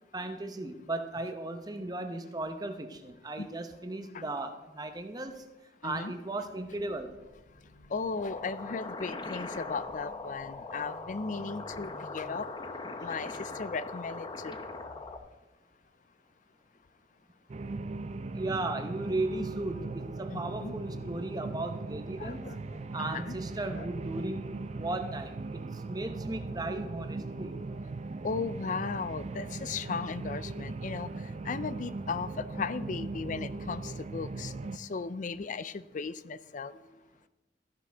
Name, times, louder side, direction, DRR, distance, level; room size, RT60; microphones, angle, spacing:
voice 1, 0.1-5.4 5.8-7.1 18.3-22.4 22.9-24.5 24.8-27.5, right 2 dB, 20° right, 7 dB, 0.9 m, -36 dB
voice 2, 5.8-6.2 7.9-12.5 13.0-14.5 20.3-21.1 22.2-22.6 23.0-23.4 23.7-23.9 28.2-31.1 31.4-36.7, left 4 dB, 45° left, 16 dB, 0.4 m, -36 dB
sound 1, 6.4-15.2, equal, 80° left, 1.8 m, -56 dB
sound 2, 8.2-15.2, left 3 dB, 25° left, 0.8 m, -40 dB
sound 3, 17.5-34.8, right 3 dB, 40° right, 0.4 m, -39 dB
13.5 x 11.0 x 3.5 m, 1.1 s
head